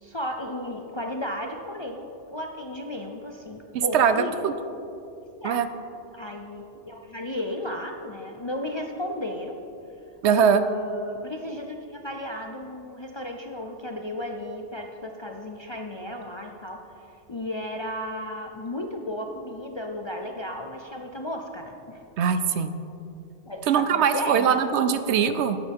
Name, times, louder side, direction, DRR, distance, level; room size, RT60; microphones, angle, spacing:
voice 1, 0.0-4.3 5.4-5.6 6.1-9.6 10.3-16.8 17.3-22.0 23.5-24.6, left 1 dB, 35° left, 2 dB, 0.4 m, -34 dB
voice 2, 3.7-4.5 5.4-5.7 10.2-10.6 22.2-22.7 23.7-25.6, right 7 dB, 75° right, 11 dB, 0.9 m, -22 dB
13.5 x 9.2 x 3.5 m, 2.7 s
omnidirectional pair, 1.2 m